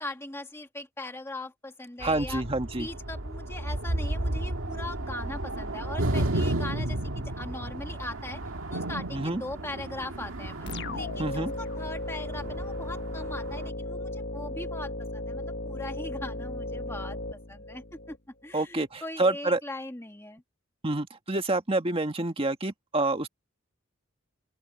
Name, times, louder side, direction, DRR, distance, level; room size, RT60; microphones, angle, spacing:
voice 1, 0.0-2.4 2.8-8.4 8.7-17.2 17.5-18.2 18.4-20.4, left 2 dB, 10° left, 1.5 m, -40 dB
voice 2, 2.0-2.9 9.1-9.4 11.2-11.5 18.5-19.6 20.8-23.3, right 2 dB, 25° right, 1.7 m, -28 dB
sound 1, 2.0-13.7, right 1 dB, 75° right, 1.9 m, -33 dB
sound 2, 10.7-18.2, left 1 dB, 55° left, 1.5 m, -35 dB
open air
head